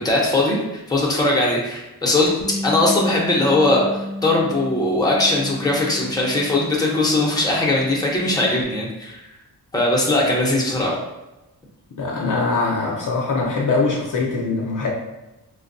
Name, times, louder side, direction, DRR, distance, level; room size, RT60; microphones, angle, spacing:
voice 1, 0.0-0.6 0.9-2.3 2.6-3.8 4.2-9.2 9.7-11.0, left 2 dB, 10° left, -3 dB, 0.8 m, -19 dB
Bass guitar, 2.4-8.6, left 1 dB, 25° right, 0.9 m, -33 dB
voice 2, 12.0-14.9, left 3 dB, 50° left, -3 dB, 0.6 m, -22 dB
4.3 x 2.2 x 2.6 m, 0.97 s
wide cardioid pair, 105°, 40 cm